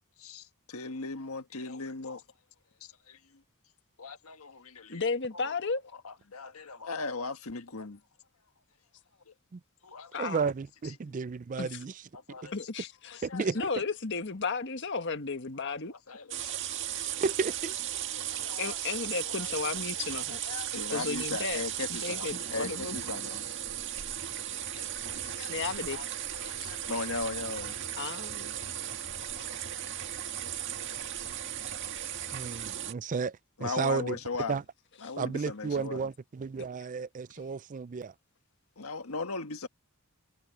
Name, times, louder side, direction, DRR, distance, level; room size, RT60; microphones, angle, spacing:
voice 1, 0.2-2.2 2.8-3.4 4.0-5.0 5.3-5.5 6.0-8.0 9.3-9.4 9.8-10.2 12.1-12.5 12.8-13.7 15.6-15.8 16.1-17.1 18.2-18.8 19.2-19.5 20.1-23.4 24.5-24.8 25.2-26.1 26.3-27.8 33.6-34.6 35.0-36.1 38.8-39.7, left 3 dB, 70° left, 1.5 m, -39 dB
voice 2, 4.9-5.8 10.1-10.4 11.6-11.8 12.5-15.9 18.3-20.4 20.9-21.6 21.9-23.0 25.5-26.0 27.9-28.5, left 4 dB, 55° left, 1.6 m, -34 dB
voice 3, 10.2-11.9 12.4-12.5 13.2-13.6 17.2-17.7 32.3-34.2 34.5-34.6 35.2-38.1, right 5 dB, 35° right, 0.4 m, -33 dB
sound 1, 16.3-32.9, right 11 dB, 55° right, 1.9 m, -36 dB
head